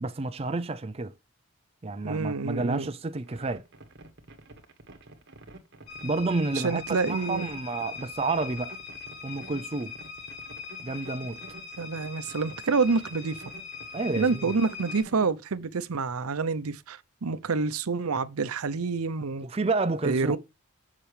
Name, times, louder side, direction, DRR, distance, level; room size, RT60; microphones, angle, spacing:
voice 1, 0.0-1.1 1.8-3.6 6.0-8.8 9.2-9.9 10.8-11.4 13.9-14.5 19.4-20.4, right 3 dB, 25° right, 0.5 m, -30 dB
voice 2, 2.0-2.9 6.5-7.5 11.8-13.4 14.2-19.5 20.0-20.4, right 4 dB, 80° right, 0.7 m, -28 dB
sound 1, 3.3-15.3, right 2 dB, 55° right, 1.9 m, -49 dB
sound 2, 5.9-15.0, left 5 dB, 80° left, 4.5 m, -41 dB
7.4 x 6.8 x 3.3 m
head